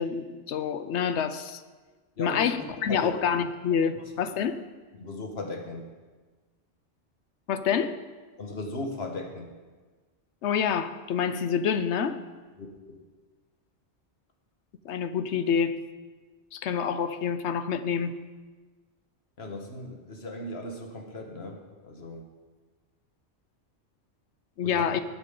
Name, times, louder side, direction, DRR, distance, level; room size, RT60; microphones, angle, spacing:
voice 1, 0.0-1.6 2.2-4.6 7.5-8.0 10.4-12.2 14.8-15.8 16.5-18.2 24.6-25.0, left 7 dB, 85° left, 12 dB, 1.0 m, -27 dB
voice 2, 2.2-3.2 3.9-4.0 4.9-5.9 8.4-9.5 12.6-13.0 19.4-22.2 24.6-24.9, left 2 dB, 65° left, 2 dB, 1.7 m, -37 dB
18.5 x 7.4 x 3.8 m, 1.3 s
omnidirectional pair, 1.1 m